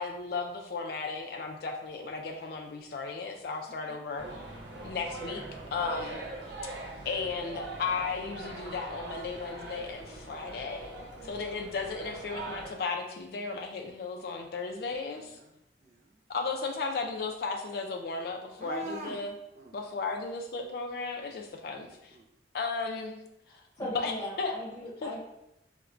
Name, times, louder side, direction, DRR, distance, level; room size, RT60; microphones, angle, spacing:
voice 1, 0.0-4.3 4.8-5.4 5.7-6.2 7.1-10.9 11.2-15.4 16.3-19.3 19.7-22.2 22.5-23.2 23.8-24.1 24.4-24.5 25.0-25.1, left 4 dB, 55° left, 2 dB, 0.3 m, -35 dB
voice 2, 3.6-4.0 6.0-6.1 10.9-11.4 15.2-16.2 18.6-19.2 19.5-19.7 21.2-21.3 22.1-22.3, right 3 dB, 40° right, 1 dB, 0.4 m, -46 dB
sound 1, 4.2-12.7, right 2 dB, 85° right, 0.8 m, -42 dB
voice 3, 23.5-25.2, left 1 dB, 15° left, -7 dB, 1.0 m, -39 dB
4.2 x 2.1 x 2.4 m, 0.86 s
head